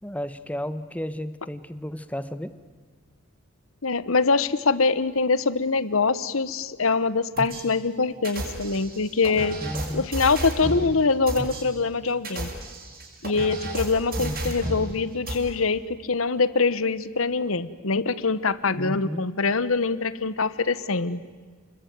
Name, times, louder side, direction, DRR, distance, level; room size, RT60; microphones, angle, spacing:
voice 1, 0.0-2.6 9.6-10.1 14.2-14.6 18.7-19.3, equal, 5° left, 12 dB, 1.0 m, -33 dB
voice 2, 3.8-9.6 9.9-12.5 13.2-21.2, left 4 dB, 80° left, 15 dB, 1.1 m, -24 dB
sound 1, 7.4-7.6 8.2-10.9 11.3-11.6 12.1-14.9 15.3-15.4, right 1 dB, 45° right, 6.5 m, -32 dB
29.5 x 21.0 x 9.4 m, 1.5 s
head